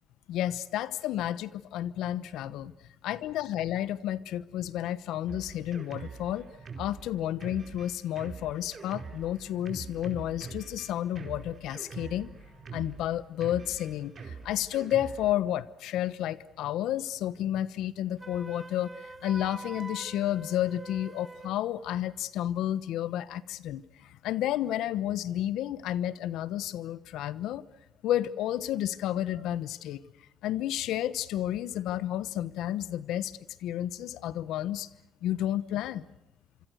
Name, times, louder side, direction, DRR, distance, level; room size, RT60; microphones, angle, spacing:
voice 1, 0.3-2.7 3.0-6.5 6.8-12.3 12.7-27.7 28.0-30.0 30.4-34.9 35.2-36.1, left 12 dB, 90° left, 17 dB, 1.1 m, -31 dB
Drum kit, 5.3-15.3, right 5 dB, 45° right, 4.8 m, -44 dB
Wind instrument woodwind instrument, 18.2-21.6, right 3 dB, 20° right, 1.0 m, -45 dB
26.5 x 25.5 x 6.5 m, 0.92 s
cardioid pair, 90°, 0 cm